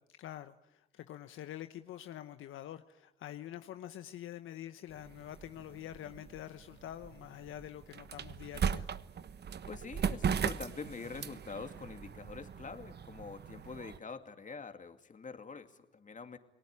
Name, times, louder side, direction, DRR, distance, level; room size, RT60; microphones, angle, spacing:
voice 1, 0.2-8.9, left 12 dB, 75° left, 10 dB, 1.0 m, -46 dB
sound 1, 4.9-14.0, right 7 dB, 55° right, 1.3 m, -38 dB
voice 2, 9.7-16.4, left 5 dB, 40° left, 7 dB, 2.6 m, -45 dB
29.5 x 19.5 x 9.8 m, 0.92 s
supercardioid pair, 60°, 21 cm